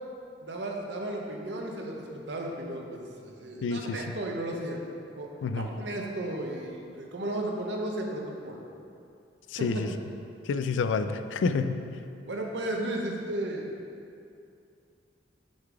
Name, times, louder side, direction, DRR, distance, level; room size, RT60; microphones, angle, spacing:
voice 1, 0.4-4.8 5.2-8.6 9.6-9.7 12.3-13.7, right 1 dB, 65° right, 0 dB, 0.8 m, -34 dB
voice 2, 3.6-4.0 5.4-5.7 9.5-9.9 10.5-11.9, left 4 dB, 75° left, 9 dB, 0.3 m, -28 dB
6.3 x 3.9 x 4.7 m, 2.5 s
head